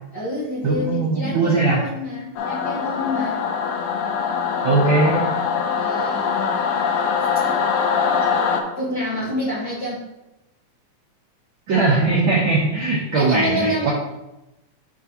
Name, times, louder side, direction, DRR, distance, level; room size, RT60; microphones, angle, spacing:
voice 1, 0.1-3.4 4.6-5.1 5.8-6.6 8.8-10.0 13.1-13.9, left 1 dB, 50° left, -7 dB, 1.2 m, -28 dB
voice 2, 0.6-1.8 4.6-5.2 11.7-13.9, right 3 dB, 65° right, -5 dB, 1.2 m, -19 dB
Singing / Musical instrument, 2.4-8.6, left 6 dB, 75° left, 1.7 m, -23 dB
10.5 x 3.7 x 2.9 m, 0.96 s
omnidirectional pair, 3.5 m